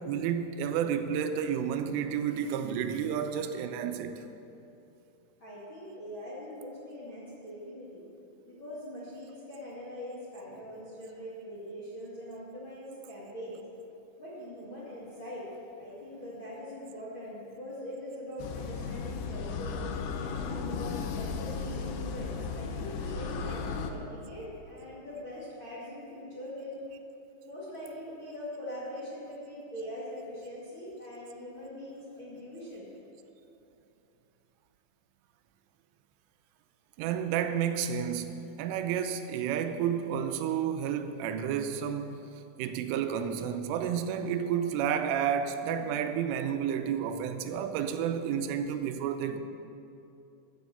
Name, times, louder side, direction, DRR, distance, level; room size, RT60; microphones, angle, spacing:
voice 1, 0.0-4.2 10.5-10.6 37.0-49.4, right 8 dB, 90° right, 3.2 m, -31 dB
voice 2, 5.4-8.0 8.5-13.6 14.2-19.9 20.4-26.8 27.4-32.9, equal, 40° left, 1.8 m, -42 dB
sound 1, 18.4-23.9, left 5 dB, 80° left, 3.3 m, -35 dB
14.0 x 8.0 x 7.0 m
omnidirectional pair, 5.7 m